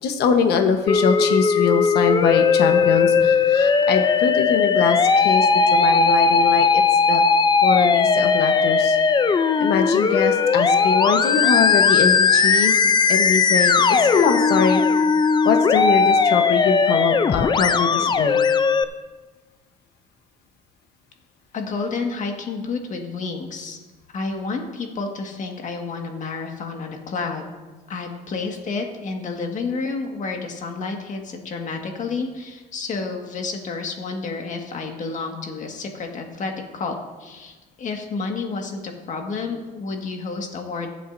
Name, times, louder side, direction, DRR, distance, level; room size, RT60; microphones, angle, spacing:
voice 1, 0.0-7.2 7.6-9.0 9.6-14.8 15.4-18.4, left 6 dB, 75° left, 5 dB, 1.2 m, -23 dB
Musical instrument, 0.9-18.8, left 5 dB, 25° left, 0.5 m, -18 dB
voice 2, 21.5-23.8 24.1-27.5 27.9-40.9, left 4 dB, 50° left, 3 dB, 1.8 m, -30 dB
20.5 x 7.6 x 2.7 m, 1.3 s
cardioid pair, 110°, 17 cm